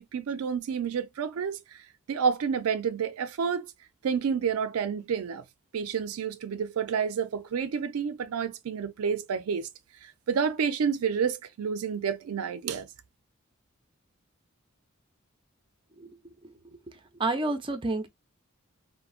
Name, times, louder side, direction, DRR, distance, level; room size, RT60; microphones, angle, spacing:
voice 1, 0.0-1.8 2.1-3.7 4.0-5.4 5.7-9.7 10.0-12.9, right 6 dB, 85° right, 0.4 m, -29 dB
voice 2, 17.2-18.1, right 2 dB, 25° right, 0.5 m, -29 dB
3.6 x 2.1 x 2.3 m
head